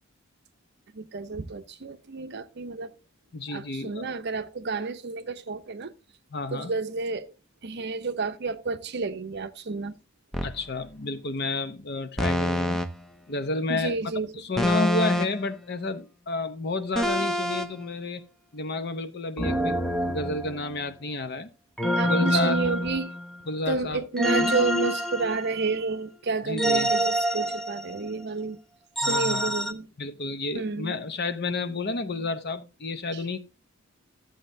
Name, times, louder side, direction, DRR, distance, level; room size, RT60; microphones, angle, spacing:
voice 1, 0.9-2.9 3.5-5.9 6.5-7.3 7.6-10.0 13.7-14.3 22.0-23.1 23.7-28.6 29.0-29.9 30.5-30.9 33.1-33.2, right 4 dB, 50° right, 0.7 m, -30 dB
voice 2, 3.3-4.1 6.3-6.7 10.4-12.8 13.3-14.0 14.3-18.2 18.5-19.8 20.1-21.5 22.0-22.7 23.5-24.0 24.4-24.5 26.4-26.9 29.0-29.5 30.0-33.4, left 2 dB, 50° left, 0.7 m, -31 dB
sound 1, 10.3-10.6 12.2-12.9 14.6-15.4 16.9-17.7 19.4-20.8 21.8-23.4 24.2-25.8 26.6-28.1 29.0-29.7, equal, ahead, 0.6 m, -26 dB
13.0 x 7.8 x 2.6 m
head